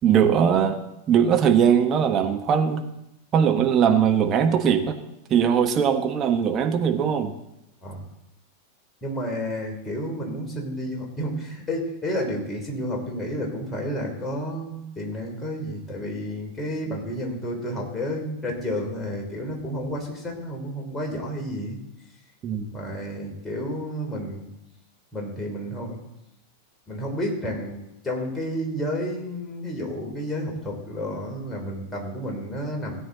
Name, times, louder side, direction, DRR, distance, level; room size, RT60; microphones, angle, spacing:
voice 1, 0.0-0.8 1.1-2.8 3.3-5.0 5.3-7.3 22.4-22.6, right 8 dB, 30° right, 5 dB, 1.2 m, -20 dB
voice 2, 9.0-21.8 22.7-24.5 25.1-26.0 26.9-27.8 28.0-32.9, equal, 15° left, -1 dB, 3.4 m, -31 dB
17.0 x 8.6 x 4.0 m, 0.86 s
figure-of-eight pair, 90°, 0 cm